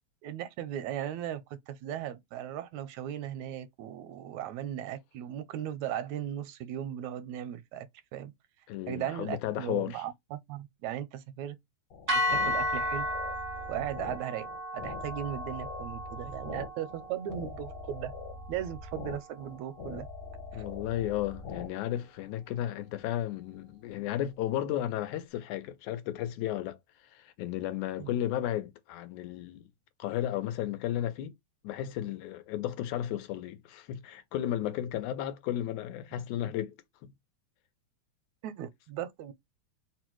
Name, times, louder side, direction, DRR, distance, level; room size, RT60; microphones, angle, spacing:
voice 1, 0.2-8.3 8.9-11.6 12.3-13.1 13.7-14.5 14.7-18.1 18.5-20.1 20.5-20.6 28.0-28.1 36.4-36.5 38.4-39.3, right 11 dB, 80° right, 1.9 m, -37 dB
voice 2, 8.7-10.0 12.4-12.5 20.5-26.8 27.1-29.7 30.0-31.3 31.6-36.8 37.0-37.1, left 12 dB, 85° left, 2.1 m, -34 dB
sound 1, 11.9-21.7, left 4 dB, 65° left, 2.2 m, -43 dB
sound 2, 12.1-20.3, left 1 dB, 45° right, 0.7 m, -35 dB
4.8 x 2.2 x 4.4 m
omnidirectional pair, 3.4 m